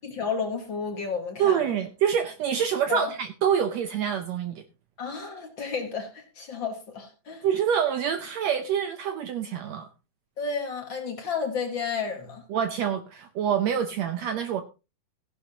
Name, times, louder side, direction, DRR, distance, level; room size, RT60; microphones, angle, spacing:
voice 1, 0.0-1.7 2.9-3.1 5.0-7.5 10.4-12.4, left 5 dB, 40° left, 1.9 m, -32 dB
voice 2, 1.4-4.6 7.4-9.9 12.5-14.6, right 8 dB, 85° right, 1.5 m, -26 dB
15.5 x 11.5 x 2.9 m
omnidirectional pair, 4.1 m